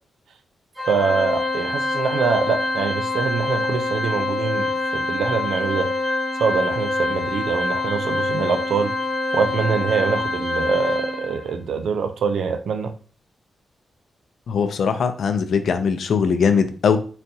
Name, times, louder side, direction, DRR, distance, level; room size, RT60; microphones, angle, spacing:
Organ, 0.8-11.5, left 2 dB, 15° right, 0.7 m, -25 dB
voice 1, 0.9-6.0 6.4-9.0 9.3-12.9, right 6 dB, 80° right, 0.4 m, -24 dB
voice 2, 14.5-17.0, left 6 dB, 65° left, 0.4 m, -20 dB
4.0 x 2.7 x 2.3 m
wide cardioid pair, 130°, 0 cm